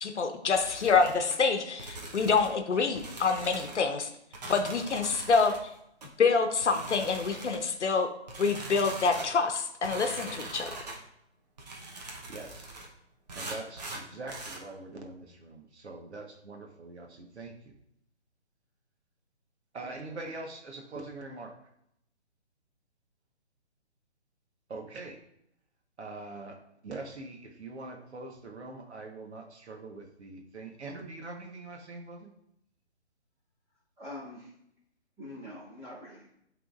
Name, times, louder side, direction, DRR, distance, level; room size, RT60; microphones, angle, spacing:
voice 1, 0.0-4.1 4.4-5.5 6.2-8.1 8.4-10.7, left 4 dB, 75° left, 6 dB, 0.9 m, -26 dB
sound 1, 0.5-1.4 1.8-2.6 2.9-3.8 4.3-5.6 6.0-6.1 6.6-7.7 8.3-9.3 9.8-11.0 11.6-12.9 13.3-14.6, right 2 dB, 35° right, 0.9 m, -42 dB
voice 2, 12.3-12.7 13.3-17.7 19.7-21.5 24.7-25.2 26.0-26.6 26.8-32.3, right 2 dB, 70° right, 2 dB, 1.3 m, -43 dB
voice 3, 34.0-34.5 35.2-36.3, left 1 dB, 10° right, -10 dB, 1.8 m, -44 dB
11.5 x 3.8 x 2.5 m, 0.76 s
hypercardioid pair, 165°, 35 cm